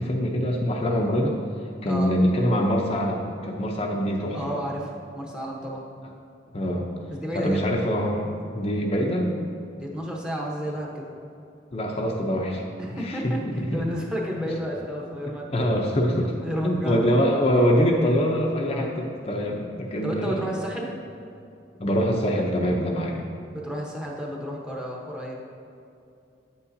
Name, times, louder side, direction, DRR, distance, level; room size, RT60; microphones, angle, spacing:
voice 1, 0.0-1.3 1.8-4.6 6.5-6.9 7.3-9.3 11.7-12.6 13.0-13.8 15.5-16.3 16.6-20.4 21.8-23.2, equal, 35° left, -1 dB, 0.6 m, -24 dB
voice 2, 4.3-5.8 7.1-7.7 9.8-11.1 12.8-15.8 16.4-17.1 18.7-18.9 20.0-20.9 23.5-25.3, equal, 5° right, -2 dB, 0.9 m, -31 dB
8.8 x 8.3 x 2.7 m, 2.5 s
head